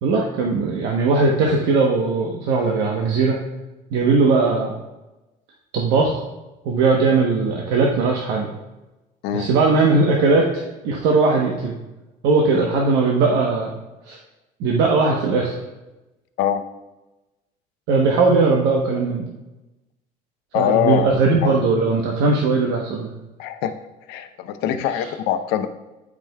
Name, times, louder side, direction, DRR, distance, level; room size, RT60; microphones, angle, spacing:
voice 1, 0.0-3.4 3.9-4.7 5.7-6.2 6.6-8.5 9.3-11.8 12.2-13.7 14.1-14.2 14.6-15.6 17.9-19.3 20.5-23.1, right 3 dB, 80° right, -1 dB, 1.0 m, -19 dB
voice 2, 20.5-21.1 21.4-21.6 23.4-23.7 24.1-25.7, left 10 dB, 85° left, 9 dB, 0.6 m, -22 dB
12.0 x 4.9 x 2.3 m, 1.0 s
cardioid pair, 150°, 17 cm